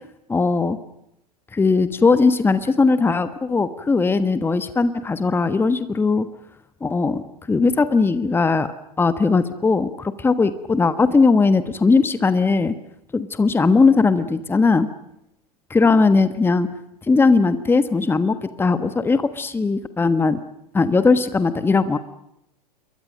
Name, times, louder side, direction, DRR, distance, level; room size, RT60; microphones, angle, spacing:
voice 1, 0.3-0.8 1.5-6.3 6.8-8.7 9.0-12.7 13.1-14.9 15.7-16.7 17.1-20.4 20.7-22.0, left 4 dB, 10° left, 12 dB, 1.3 m, -19 dB
29.0 x 22.5 x 6.5 m, 0.80 s
figure-of-eight pair, 95°, 21 cm